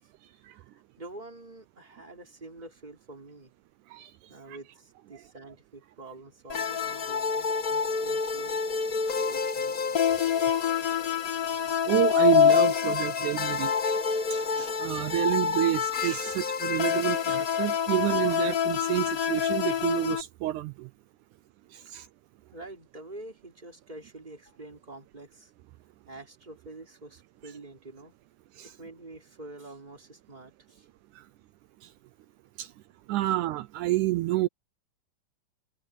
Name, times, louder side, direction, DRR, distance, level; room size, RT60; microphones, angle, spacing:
voice 1, 0.5-3.5 4.3-8.6 9.3-9.9 21.8-21.9 22.5-25.5 26.1-28.1 28.8-30.9, right 2 dB, 15° right, 3.5 m, -47 dB
sound 1, 6.5-20.2, left 7 dB, 40° left, 1.3 m, -26 dB
voice 2, 11.9-20.9 21.7-22.1 28.6-28.7 31.2-31.3 31.8-31.9 32.6-32.7 33.1-34.5, right 16 dB, 80° right, 2.1 m, -29 dB
omnidirectional pair, 3.6 m